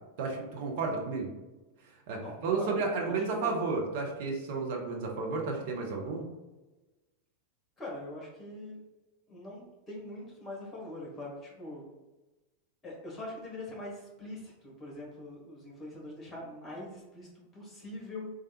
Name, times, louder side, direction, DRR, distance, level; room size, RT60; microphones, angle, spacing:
voice 1, 0.2-1.3 2.1-6.3, right 4 dB, 50° right, 0 dB, 0.6 m, -32 dB
voice 2, 2.2-2.7 3.0-3.2 3.4-3.7 7.8-8.8 9.3-11.9 12.8-18.3, left 1 dB, 15° left, -3 dB, 1.3 m, -43 dB
3.2 x 2.4 x 2.8 m, 1.1 s
figure-of-eight pair, 90°, 0 cm